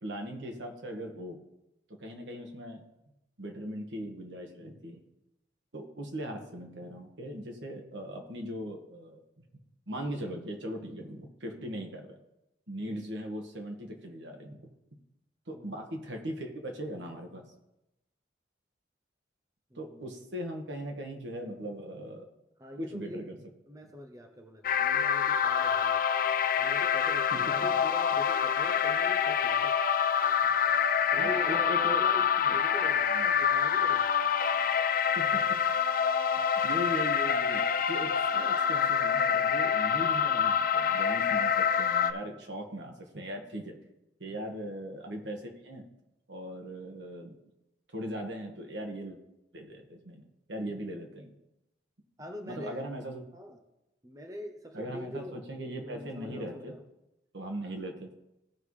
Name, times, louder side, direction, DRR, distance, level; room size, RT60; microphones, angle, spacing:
voice 1, 0.0-1.4 2.0-2.8 3.4-5.0 5.7-9.2 9.9-12.2 12.7-14.7 15.5-17.5 19.7-22.3 22.8-23.4 27.3-27.7 30.4-30.5 31.2-32.0 32.4-32.6 33.1-33.4 35.1-35.6 36.4-37.6 37.9-43.8 44.2-45.8 46.3-47.4 47.9-49.2 49.5-50.2 50.5-51.3 52.4-53.2 54.7-56.8 57.3-58.1, equal, 75° right, 3 dB, 1.6 m, -39 dB
voice 2, 12.9-13.2 15.5-15.8 19.7-20.1 22.6-23.3 23.7-26.0 26.6-29.7 31.1-34.2 52.2-52.8 53.3-53.6 54.0-55.4 55.8-56.8, equal, 20° right, 4 dB, 0.7 m, -43 dB
sound 1, 24.6-42.1, left 7 dB, 50° left, 0.4 m, -26 dB
16.5 x 5.5 x 3.2 m, 0.91 s
head